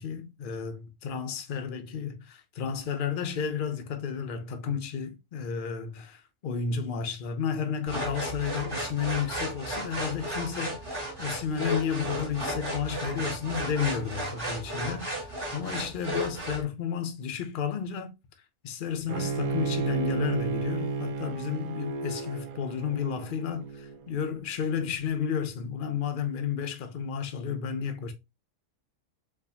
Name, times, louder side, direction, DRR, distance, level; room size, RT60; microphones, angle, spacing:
voice 1, 0.0-18.1 18.6-28.1, left 7 dB, 55° left, 0.6 m, -32 dB
sound 1, 7.9-16.6, right 1 dB, 15° right, 1.6 m, -34 dB
Bowed string instrument, 19.1-24.2, right 5 dB, 75° right, 1.0 m, -32 dB
4.5 x 2.5 x 2.7 m
omnidirectional pair, 1.6 m